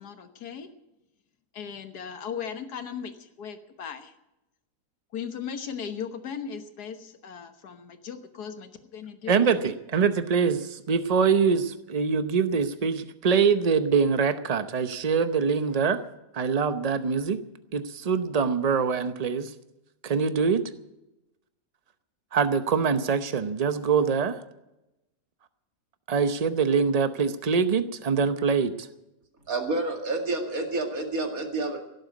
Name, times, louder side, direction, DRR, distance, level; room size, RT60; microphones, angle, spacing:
voice 1, 1.6-3.1 3.4-4.0 5.1-6.9 7.3-7.5 8.1-8.5 9.2-9.3, left 7 dB, 75° left, 8 dB, 1.8 m, -36 dB
voice 2, 9.3-16.0 16.3-17.4 17.7-19.5 20.0-20.6 22.3-24.4 26.1-28.7, right 6 dB, 35° right, 10 dB, 0.7 m, -24 dB
voice 3, 29.5-31.8, right 2 dB, 60° right, 3 dB, 2.6 m, -29 dB
17.0 x 8.0 x 9.2 m, 0.93 s
omnidirectional pair, 1.7 m